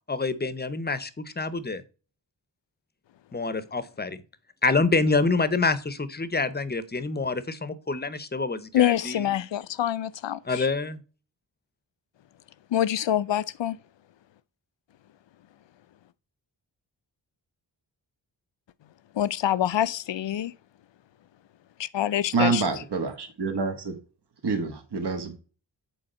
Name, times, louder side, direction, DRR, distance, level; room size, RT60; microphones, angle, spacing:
voice 1, 0.1-1.8 3.3-4.2 4.6-9.3 10.5-11.0, left 3 dB, 20° left, 0.7 m, -27 dB
voice 2, 8.7-10.6 12.7-13.8 19.1-20.5 21.8-22.6, left 11 dB, 75° left, 0.6 m, -26 dB
voice 3, 22.3-24.0 24.4-25.4, right 4 dB, 60° right, 1.4 m, -27 dB
7.8 x 4.6 x 4.2 m
wide cardioid pair, 120°, 44 cm